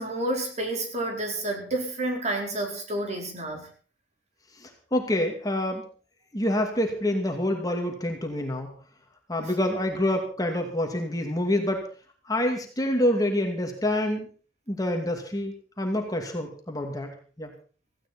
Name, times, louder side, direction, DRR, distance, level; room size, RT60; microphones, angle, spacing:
voice 1, 0.0-3.7 9.4-9.5, right 1 dB, 40° right, 2 dB, 4.5 m, -30 dB
voice 2, 4.6-5.8 6.3-8.7 9.3-11.8 12.3-14.3 14.7-17.1 17.4-17.5, left 1 dB, 20° left, 3 dB, 2.5 m, -27 dB
17.5 x 15.5 x 4.3 m, 0.40 s
head